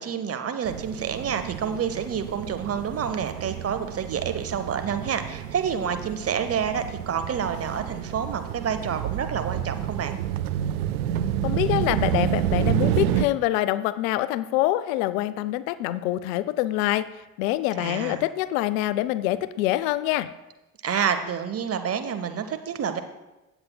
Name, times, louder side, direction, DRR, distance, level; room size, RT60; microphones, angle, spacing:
voice 1, 0.0-10.2 17.8-18.2 20.8-23.0, right 7 dB, 30° right, 8 dB, 0.9 m, -28 dB
sound 1, 0.6-13.3, right 11 dB, 75° right, 0.6 m, -29 dB
voice 2, 11.4-17.1 17.4-20.3, left 15 dB, 65° left, 15 dB, 0.5 m, -25 dB
16.0 x 7.9 x 2.2 m, 1.0 s
figure-of-eight pair, 55°, 44 cm